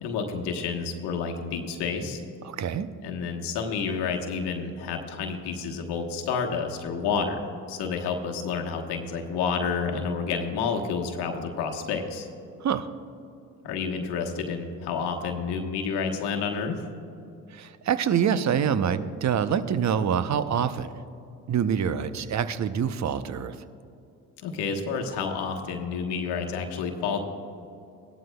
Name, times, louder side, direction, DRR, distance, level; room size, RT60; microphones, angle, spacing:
voice 1, 0.0-2.2 3.0-12.3 13.6-16.9 24.4-27.2, left 5 dB, 75° left, 3 dB, 1.2 m, -29 dB
voice 2, 2.4-2.9 12.6-12.9 17.5-20.9 21.5-23.6, right 8 dB, 45° right, 12 dB, 0.7 m, -26 dB
17.0 x 12.5 x 2.3 m, 2.5 s
hypercardioid pair, 55°, 41 cm